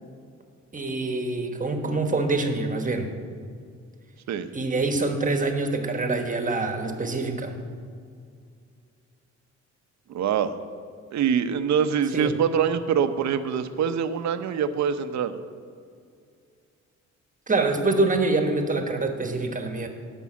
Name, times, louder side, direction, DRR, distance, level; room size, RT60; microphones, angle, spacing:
voice 1, 0.7-3.1 4.5-7.6 12.1-12.3 17.5-19.9, right 3 dB, 25° right, 5 dB, 1.3 m, -25 dB
voice 2, 10.1-10.6 11.1-15.4, right 7 dB, 65° right, 10 dB, 0.7 m, -24 dB
11.0 x 5.5 x 7.4 m, 2.2 s
cardioid pair, 90°, 30 cm